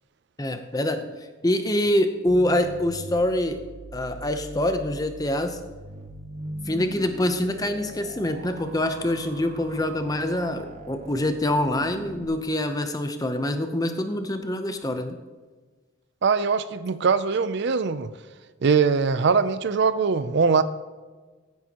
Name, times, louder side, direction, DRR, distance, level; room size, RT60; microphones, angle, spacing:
voice 1, 0.4-1.1 1.4-3.6 3.9-5.6 6.7-15.2, left 1 dB, 20° left, 8 dB, 0.7 m, -25 dB
sound 1, 2.3-12.3, right 1 dB, 35° right, 1.2 m, -41 dB
voice 2, 16.2-18.1 18.6-20.6, right 5 dB, 55° right, 13 dB, 0.4 m, -22 dB
15.0 x 9.3 x 2.9 m, 1.4 s
head